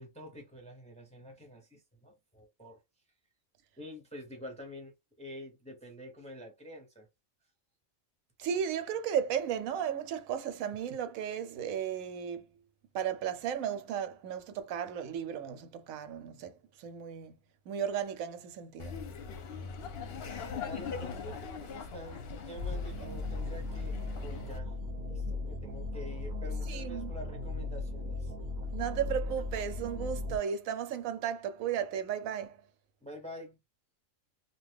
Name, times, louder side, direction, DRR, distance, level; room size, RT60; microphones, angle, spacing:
voice 1, 0.0-2.8 3.8-7.1 19.9-24.8 25.0-28.3 33.0-33.6, left 1 dB, 5° left, 0.6 m, -47 dB
voice 2, 8.4-12.5 12.9-17.4 17.7-19.0 25.3-25.4 26.7-27.1 28.7-32.6, right 8 dB, 85° right, 1.0 m, -35 dB
Laughter, 18.8-24.6, left 5 dB, 60° left, 0.7 m, -41 dB
sound 1, 22.6-30.4, left 3 dB, 45° right, 0.8 m, -37 dB
2.8 x 2.3 x 3.4 m
omnidirectional pair, 1.4 m